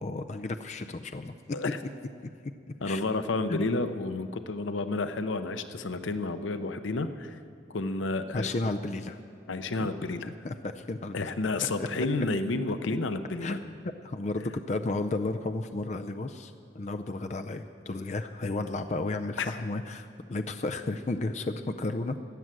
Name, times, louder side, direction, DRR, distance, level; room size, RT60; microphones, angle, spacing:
voice 1, 0.0-1.3 2.8-3.0 3.5-3.6 8.3-9.2 9.8-9.9 10.4-11.3 11.8-11.9 13.4-13.8 14.0-22.2, left 2 dB, 35° left, 7 dB, 0.4 m, -33 dB
voice 2, 2.8-7.4 7.7-8.5 9.5-10.3 11.1-13.6 19.4-19.5, left 3 dB, 90° left, 10 dB, 0.7 m, -30 dB
14.0 x 9.4 x 7.6 m, 2.4 s
head